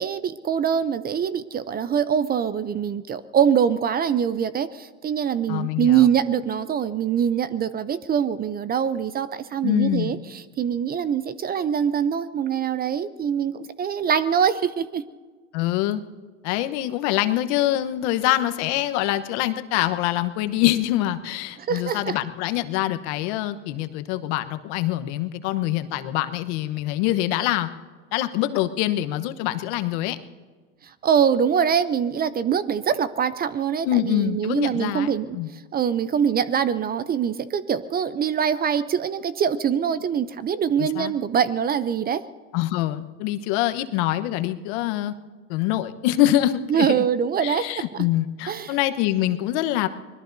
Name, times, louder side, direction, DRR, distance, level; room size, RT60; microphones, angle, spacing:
voice 1, 0.0-15.0 21.6-22.2 30.8-42.2 46.7-48.1 48.5-48.8, right 8 dB, 25° right, 14 dB, 0.5 m, -24 dB
voice 2, 5.5-6.1 9.6-10.2 15.5-16.0 16.4-27.7 28.1-30.2 33.8-35.5 40.8-41.1 42.5-45.1 45.5-47.1 47.4-49.9, left 14 dB, 60° left, 9 dB, 1.1 m, -24 dB
25.5 x 21.0 x 2.7 m, 1.4 s
supercardioid pair, 105°, 38 cm